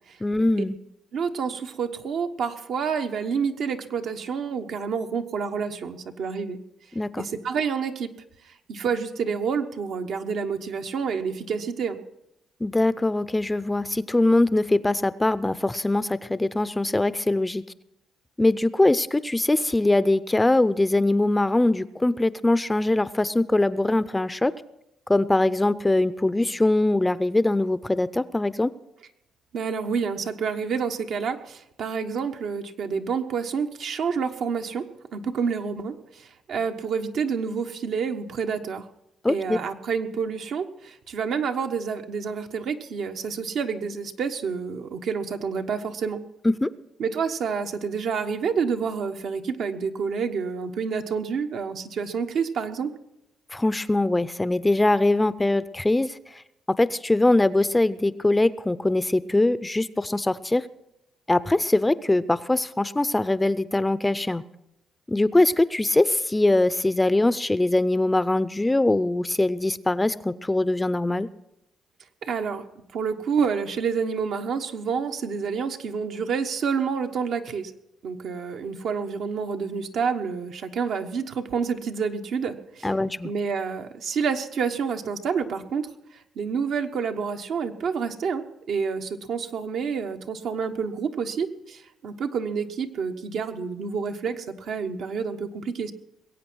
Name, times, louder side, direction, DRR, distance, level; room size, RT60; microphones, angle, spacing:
voice 1, 0.2-0.8 6.9-7.2 12.6-17.6 18.4-24.5 25.1-28.7 39.2-39.6 46.4-46.7 53.5-56.2 56.8-60.7 61.3-64.4 65.1-71.3 82.8-83.3, left 2 dB, 15° left, 16 dB, 0.5 m, -22 dB
voice 2, 1.1-6.6 7.2-8.1 8.4-12.0 29.5-34.9 35.1-38.9 39.3-46.2 47.0-52.9 72.2-72.6 72.9-77.7 78.0-82.9 83.2-95.9, right 6 dB, 70° right, 5 dB, 1.1 m, -28 dB
21.0 x 8.5 x 6.2 m, 0.83 s
cardioid pair, 90°, 0 cm